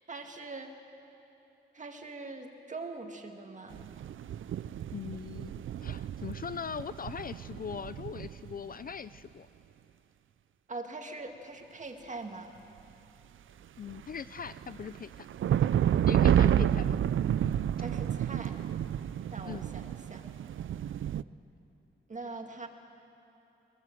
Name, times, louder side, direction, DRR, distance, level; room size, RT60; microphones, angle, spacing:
voice 1, 0.1-0.7 1.7-3.8 10.7-12.5 17.8-18.6 19.3-20.3 22.1-22.7, right 3 dB, 35° right, 4 dB, 1.9 m, -42 dB
sound 1, 3.7-8.9 13.9-21.2, right 10 dB, 70° right, 0.4 m, -30 dB
voice 2, 4.9-9.5 13.8-15.3 16.1-16.9 17.4-17.6 19.4-19.6, left 7 dB, 45° left, 14 dB, 0.4 m, -40 dB
21.5 x 21.5 x 7.7 m, 3.0 s
wide cardioid pair, 135°, 21 cm